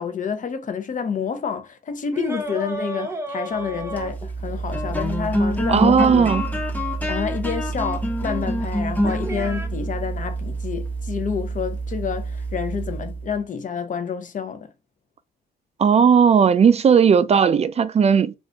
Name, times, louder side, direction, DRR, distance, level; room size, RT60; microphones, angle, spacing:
voice 1, 0.0-6.3 7.1-14.7, left 6 dB, 40° left, 0.8 m, -29 dB
sound 1, 2.1-4.7 7.3-7.4 9.0-9.7, right 2 dB, 15° right, 0.8 m, -32 dB
sound 2, 3.7-13.3, right 1 dB, 10° left, 1.1 m, -26 dB
voice 2, 5.7-6.4 15.8-18.3, right 7 dB, 35° right, 0.4 m, -16 dB
2.5 x 2.4 x 3.3 m
cardioid pair, 90°, 20 cm